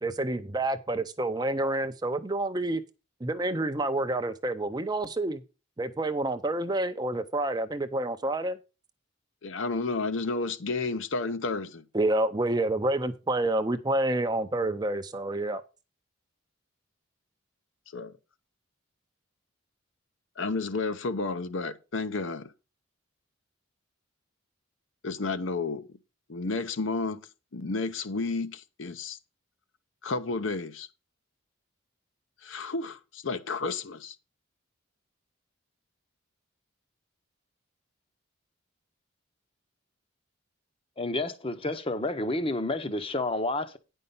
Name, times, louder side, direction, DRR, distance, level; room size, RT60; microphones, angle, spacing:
voice 1, 0.0-2.8 3.2-5.4 5.8-8.6 11.9-15.6, right 2 dB, 20° right, 0.5 m, -28 dB
voice 2, 9.4-11.8 17.9-18.1 20.4-22.5 25.0-25.8 26.3-27.3 27.5-29.2 30.0-30.9 32.4-34.1, left 3 dB, 65° left, 0.7 m, -31 dB
voice 3, 41.0-43.8, left 2 dB, 25° left, 0.7 m, -30 dB
9.6 x 5.5 x 5.3 m
head